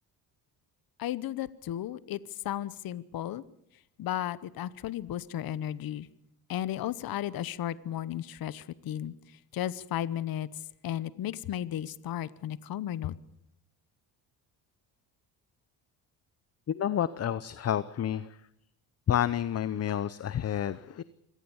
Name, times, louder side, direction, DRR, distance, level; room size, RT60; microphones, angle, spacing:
voice 1, 1.0-3.4 4.0-6.1 6.5-9.1 9.5-10.5 10.8-13.1, left 11 dB, 55° left, 17 dB, 1.0 m, -34 dB
voice 2, 16.7-18.4 19.1-21.0, left 10 dB, 35° left, 16 dB, 0.8 m, -29 dB
25.0 x 18.0 x 7.2 m, 0.75 s
cardioid pair, 110°, 41 cm